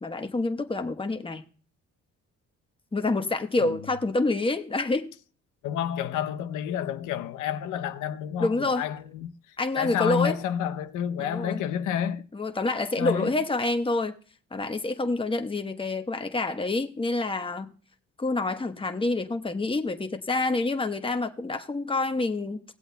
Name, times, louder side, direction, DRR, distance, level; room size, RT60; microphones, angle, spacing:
voice 1, 0.0-1.4 2.9-5.1 8.4-8.9 9.6-10.4 11.2-11.6 12.3-14.2 14.5-17.7 18.2-22.6, left 2 dB, 15° left, 1.1 m, -27 dB
voice 2, 5.6-12.3 13.0-13.3, left 9 dB, 85° left, 0.8 m, -30 dB
19.0 x 8.0 x 2.3 m
cardioid pair, 90°, 30 cm